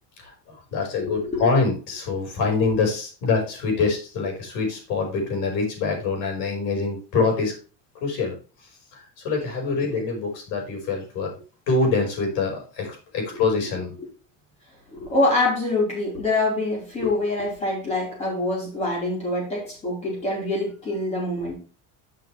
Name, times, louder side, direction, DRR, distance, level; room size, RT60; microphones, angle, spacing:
voice 1, 0.2-7.5 8.0-8.3 8.9-11.3 11.7-14.0, left 4 dB, 50° left, 1 dB, 5.1 m, -25 dB
voice 2, 1.0-1.5 9.9-10.0 13.3-13.4 14.9-21.6, left 2 dB, 15° left, -3 dB, 4.5 m, -25 dB
11.0 x 6.7 x 3.3 m, 0.35 s
cardioid pair, 180°, 39 cm